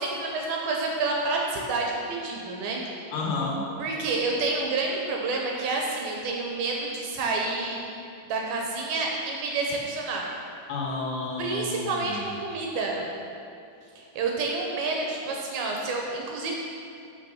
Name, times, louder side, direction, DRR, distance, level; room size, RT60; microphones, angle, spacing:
voice 1, 0.0-2.8 3.8-7.8 8.3-10.3 11.4-13.0 14.0-16.6, right 3 dB, 75° right, 0 dB, 2.5 m, -29 dB
voice 2, 3.1-3.6 10.7-12.2, left 3 dB, 75° left, -2 dB, 3.0 m, -31 dB
6.6 x 6.2 x 6.2 m, 2.6 s
omnidirectional pair, 4.7 m